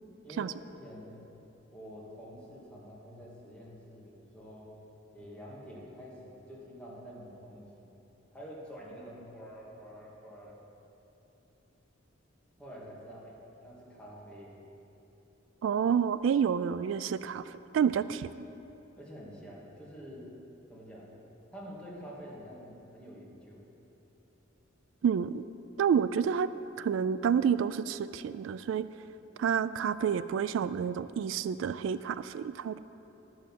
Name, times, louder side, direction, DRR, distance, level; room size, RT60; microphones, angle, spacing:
voice 1, 0.2-1.2 1.7-4.7 5.1-7.9 8.3-10.6 12.6-13.3 13.6-14.5 19.0-20.3 20.7-21.1 21.5-23.6, equal, 5° left, -7 dB, 2.2 m, -47 dB
voice 2, 15.6-18.3 25.0-25.4 25.8-26.5 26.8-28.9 29.4-32.8, right 7 dB, 85° right, 15 dB, 0.3 m, -29 dB
11.5 x 6.4 x 7.3 m, 3.0 s
head